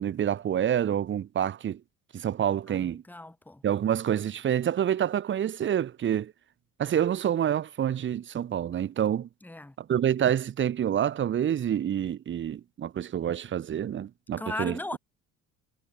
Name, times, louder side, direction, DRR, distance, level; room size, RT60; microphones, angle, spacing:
voice 1, 0.0-1.8 2.1-3.0 3.6-6.3 6.8-9.3 9.8-15.0, right 10 dB, 35° right, 0.8 m, -27 dB
voice 2, 2.7-3.6 9.4-9.7 14.4-15.0, left 2 dB, 5° left, 1.8 m, -37 dB
supercardioid pair, 100°, 34 cm